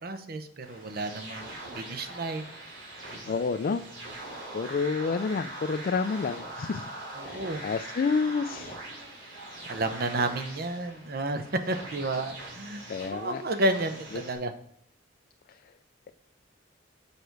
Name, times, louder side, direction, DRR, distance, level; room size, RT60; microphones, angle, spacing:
voice 1, 0.0-1.4 1.7-2.5 3.1-3.3 7.2-7.6 9.7-14.5, right 2 dB, 55° right, 8 dB, 0.8 m, -31 dB
sound 1, 0.6-14.3, right 2 dB, 80° right, 2.7 m, -42 dB
voice 2, 3.3-3.8 4.5-6.9 7.2-8.8 12.9-13.4, left 4 dB, 50° left, 8 dB, 0.3 m, -29 dB
6.7 x 5.2 x 4.6 m, 0.68 s
head